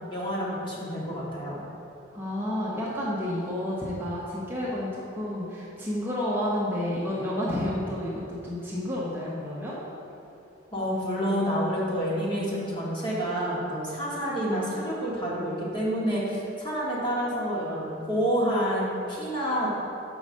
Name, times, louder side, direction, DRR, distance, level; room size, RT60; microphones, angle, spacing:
voice 1, 0.1-1.6 10.7-19.7, equal, 25° left, -7 dB, 1.6 m, -28 dB
voice 2, 2.1-9.7, left 1 dB, 10° right, -8 dB, 0.9 m, -30 dB
5.4 x 4.8 x 6.4 m, 2.8 s
head